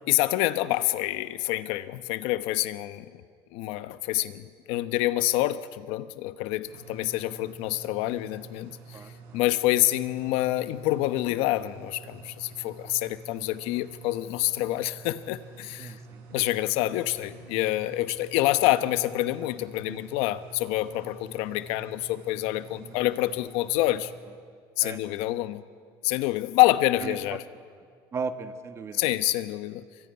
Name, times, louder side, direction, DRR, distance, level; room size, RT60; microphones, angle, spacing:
voice 1, 0.1-3.2 3.5-9.0 9.3-15.9 16.3-24.1 24.8-25.6 26.0-27.4 28.9-29.8, left 16 dB, 75° left, 12 dB, 1.0 m, -27 dB
sound 1, 6.7-24.2, right 4 dB, 65° right, 6.7 m, -48 dB
voice 2, 8.9-9.4 12.8-12.9 15.8-16.4 19.8-20.0 20.9-21.0 22.8-22.9 24.8-25.4 27.0-27.2 28.1-29.0, right 5 dB, 30° right, 9 dB, 1.6 m, -37 dB
24.0 x 22.5 x 9.7 m, 2.1 s
cardioid pair, 135°, 10 cm